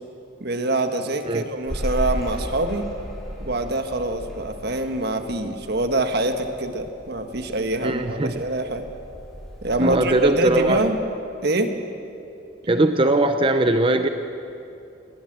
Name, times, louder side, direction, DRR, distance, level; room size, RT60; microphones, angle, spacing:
voice 1, 0.4-2.9 3.4-8.8 9.6-11.0 11.4-11.7, right 2 dB, 55° right, 7 dB, 1.5 m, -25 dB
sound 1, 1.7-11.0, equal, ahead, 6.0 m, -35 dB
voice 2, 7.8-8.3 9.8-10.9 12.7-14.1, right 2 dB, 25° right, 8 dB, 0.7 m, -20 dB
19.5 x 19.5 x 7.5 m, 2.7 s
head